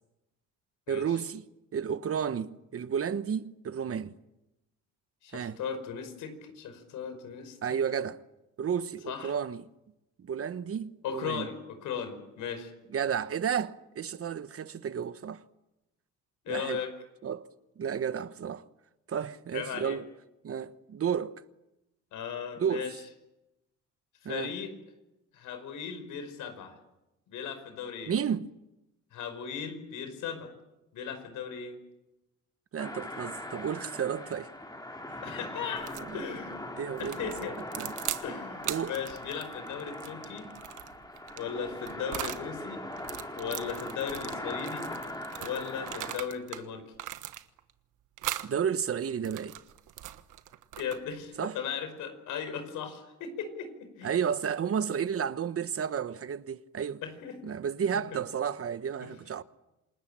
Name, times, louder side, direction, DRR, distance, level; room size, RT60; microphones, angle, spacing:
voice 1, 0.9-1.4 1.7-4.2 5.3-5.6 7.6-8.2 8.6-9.6 10.2-11.5 12.9-15.4 16.5-16.8 17.2-17.5 17.8-18.6 19.1-20.0 20.4-21.4 22.6-22.9 24.2-24.5 28.1-28.5 32.7-34.5 36.0-36.3 36.8-37.3 37.8-37.9 38.6-38.9 48.4-49.6 51.4-51.5 54.0-57.0 57.4-59.4, right 7 dB, 50° right, 1.2 m, -32 dB
voice 2, 5.2-7.6 9.1-9.3 11.0-12.7 16.4-16.9 19.5-20.0 22.1-23.0 24.2-24.7 25.3-26.7 27.3-28.2 29.1-30.5 30.9-31.8 35.2-36.6 37.0-37.6 38.2-40.5 41.4-42.8 43.4-44.9 45.4-46.8 50.8-54.1 57.0-57.4 58.1-58.2 59.0-59.1, left 7 dB, 85° left, 5.2 m, -37 dB
sound 1, 32.8-46.2, left 1 dB, 15° left, 3.9 m, -41 dB
sound 2, 35.8-36.1 37.0-38.3 38.6-42.5 42.9-46.6 46.9-47.7 48.2-48.5 49.1-51.2, right 13 dB, 90° right, 1.4 m, -40 dB
28.0 x 20.5 x 8.9 m
cardioid pair, 90°, 30 cm